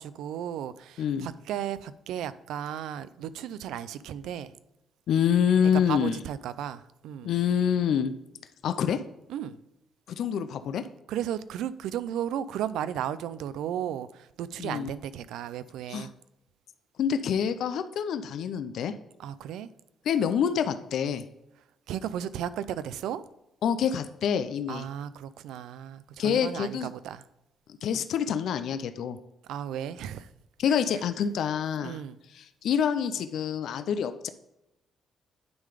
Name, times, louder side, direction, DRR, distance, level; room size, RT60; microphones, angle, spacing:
voice 1, 0.0-4.5 5.9-7.3 9.3-9.6 11.1-16.1 19.2-19.7 21.9-23.2 24.7-27.2 29.5-30.3 31.8-32.2, right 10 dB, 90° right, 0.4 m, -34 dB
voice 2, 5.1-6.2 7.2-8.1 8.6-9.0 10.1-10.8 14.6-14.9 15.9-16.1 17.0-18.9 20.1-21.2 23.6-24.8 26.2-26.9 27.8-29.2 30.6-32.0 32.3-34.3, left 8 dB, 75° left, 0.4 m, -26 dB
9.4 x 3.8 x 5.0 m
cardioid pair, 105°, 0 cm